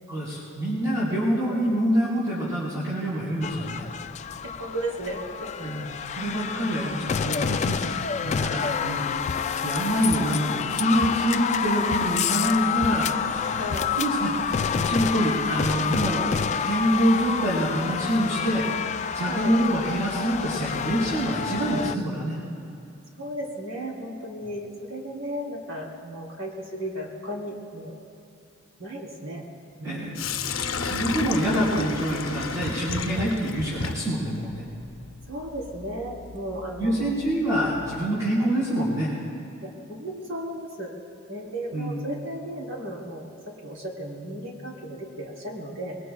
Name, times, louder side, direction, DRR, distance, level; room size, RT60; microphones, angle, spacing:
voice 1, 0.1-3.8 5.6-9.1 9.6-13.7 13.9-16.3 16.6-18.7 19.1-22.4 29.8-30.2 30.8-34.6 36.8-39.1 41.7-42.0, right 1 dB, 20° right, -11 dB, 4.3 m, -26 dB
voice 2, 1.1-1.6 4.4-5.5 6.1-6.2 6.6-7.1 13.5-13.9 19.2-19.6 23.1-28.0 28.8-29.5 29.8-30.3 33.1-33.3 35.3-37.1 39.6-40.9 41.3-46.0, right 1 dB, 90° right, -3 dB, 3.6 m, -35 dB
sound 1, 3.4-22.0, left 7 dB, 35° left, 0.3 m, -28 dB
Sink (filling or washing), 30.2-38.1, left 4 dB, 75° left, 0.7 m, -33 dB
26.0 x 22.0 x 2.4 m, 2.4 s
head